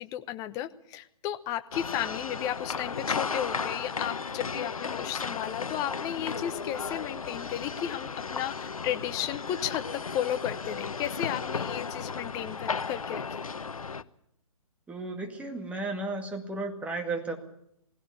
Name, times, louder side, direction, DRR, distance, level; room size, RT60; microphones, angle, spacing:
voice 1, 0.0-13.4, left 11 dB, 20° left, 12 dB, 0.9 m, -34 dB
sound 1, 1.7-14.0, left 5 dB, 75° left, 0.9 m, -35 dB
voice 2, 14.9-17.4, right 3 dB, 5° right, 3 dB, 2.2 m, -34 dB
19.5 x 16.5 x 8.5 m, 0.78 s
figure-of-eight pair, 135°, 18 cm